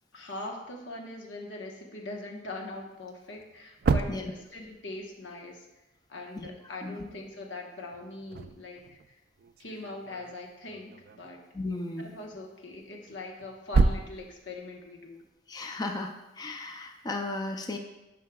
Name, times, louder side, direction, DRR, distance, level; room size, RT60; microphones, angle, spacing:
voice 1, 0.1-5.7 6.1-8.8 9.1-9.2 9.6-11.4 12.0-15.2, left 2 dB, 90° left, 0 dB, 1.2 m, -41 dB
sound 1, 2.8-2.9 3.3-5.1 7.9-11.6 12.7-14.9, right 4 dB, 55° right, 0.3 m, -31 dB
voice 2, 6.4-7.0 11.5-12.1 15.5-17.8, left 2 dB, 20° left, 4 dB, 0.4 m, -35 dB
11.0 x 5.5 x 2.3 m, 1.0 s
head